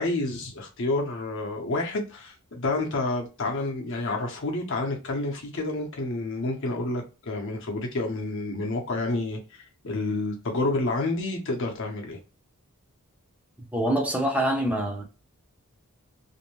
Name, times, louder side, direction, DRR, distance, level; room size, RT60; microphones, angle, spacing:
voice 1, 0.0-12.2, left 2 dB, 55° left, 0.7 m, -29 dB
voice 2, 13.7-15.0, right 1 dB, 5° right, 0.5 m, -25 dB
2.6 x 2.1 x 2.9 m
head